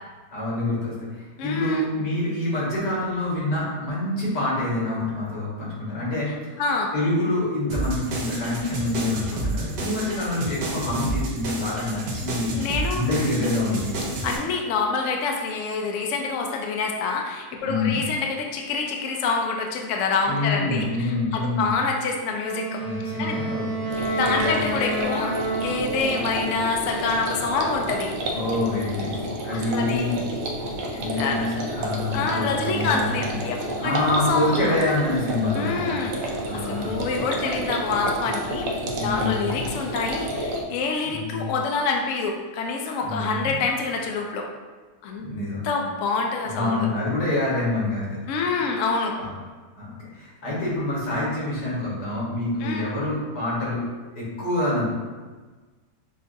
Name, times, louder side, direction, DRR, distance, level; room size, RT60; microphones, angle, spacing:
voice 1, 0.3-6.5 6.9-12.5 12.9-14.0 17.6-18.1 20.3-21.7 22.8-24.0 24.2-24.6 28.3-30.2 30.9-33.3 33.8-36.1 36.4-37.1 38.9-39.6 41.0-41.4 43.0-43.6 45.2-45.6 46.4-48.2 48.5-48.6 49.2-49.3 49.8-53.8 54.1-54.9, left 2 dB, 85° left, -7 dB, 2.1 m, -26 dB
voice 2, 1.4-1.8 6.6-6.9 12.5-13.0 14.2-22.8 23.2-23.4 24.1-25.3 25.6-28.1 29.5-30.1 30.9-31.5 32.1-34.8 35.5-38.7 39.0-44.5 45.0-45.3 45.6-46.9 48.3-49.1 52.6-52.8, left 4 dB, 65° left, 1 dB, 0.8 m, -26 dB
sound 1, 7.7-14.4, right 2 dB, 85° right, 1.4 m, -30 dB
Wind instrument woodwind instrument, 22.4-26.6, right 2 dB, 45° right, 1.8 m, -29 dB
sound 2, 23.9-40.6, right 1 dB, 65° right, 1.0 m, -30 dB
6.7 x 2.5 x 2.6 m, 1.3 s
omnidirectional pair, 1.8 m